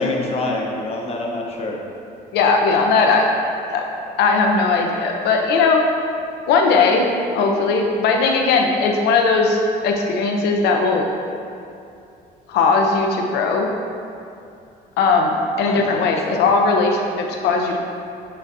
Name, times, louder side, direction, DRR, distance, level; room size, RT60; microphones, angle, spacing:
voice 1, 0.0-1.8 15.6-16.0 16.3-16.4, left 2 dB, 35° left, -1 dB, 0.9 m, -26 dB
voice 2, 2.3-3.3 3.7-3.8 4.2-5.8 6.5-11.1 12.5-13.7 15.0-17.8, left 4 dB, 75° left, 2 dB, 0.7 m, -18 dB
8.5 x 4.1 x 2.7 m, 2.6 s
cardioid pair, 110°, 17 cm